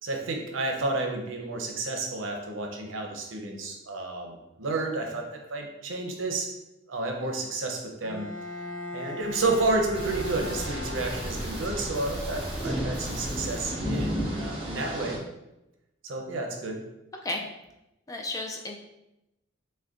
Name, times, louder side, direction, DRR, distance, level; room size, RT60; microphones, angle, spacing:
voice 1, 0.0-6.5 6.9-8.3 8.9-15.2 16.0-16.8, right 2 dB, 75° right, 2 dB, 0.7 m, -31 dB
Bowed string instrument, 8.0-11.7, left 3 dB, 85° left, 0.7 m, -39 dB
sound 1, 9.2-14.1, equal, 5° right, 1.2 m, -38 dB
sound 2, 9.9-15.2, equal, 25° right, 0.7 m, -34 dB
voice 2, 18.1-18.8, left 2 dB, 15° left, 2 dB, 0.3 m, -33 dB
6.2 x 2.2 x 2.5 m, 0.92 s
head